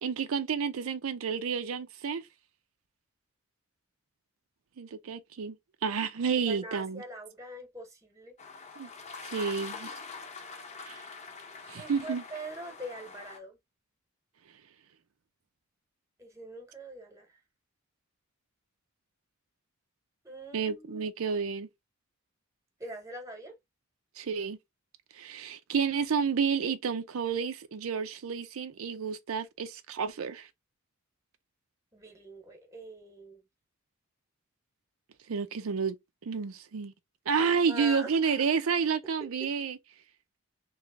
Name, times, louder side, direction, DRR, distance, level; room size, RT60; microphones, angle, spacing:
voice 1, 0.0-2.3 4.8-5.6 5.8-7.0 8.8-8.9 9.2-9.9 10.8-11.0 11.7-12.2 20.5-21.7 24.2-24.6 25.1-30.5 35.3-36.0 36.2-36.9 37.3-39.8, right 6 dB, 90° right, 0.5 m, -30 dB
voice 2, 6.5-8.4 11.7-13.6 16.2-17.3 20.2-21.0 22.8-23.5 31.9-33.4 37.7-38.1, right 1 dB, 15° right, 1.1 m, -43 dB
sound 1, 8.4-13.4, left 4 dB, 35° left, 0.7 m, -44 dB
3.2 x 3.0 x 3.5 m
head